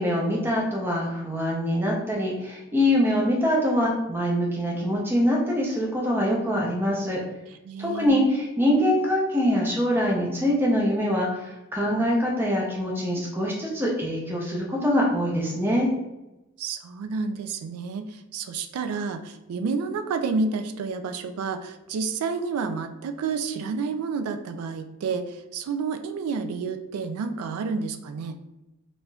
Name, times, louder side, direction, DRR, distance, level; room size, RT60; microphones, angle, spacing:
voice 1, 0.0-7.2 7.8-15.9, equal, 10° right, -2 dB, 0.5 m, -24 dB
voice 2, 7.6-8.2 16.6-28.4, right 4 dB, 90° right, 9 dB, 0.3 m, -30 dB
3.4 x 2.5 x 2.2 m, 0.97 s
head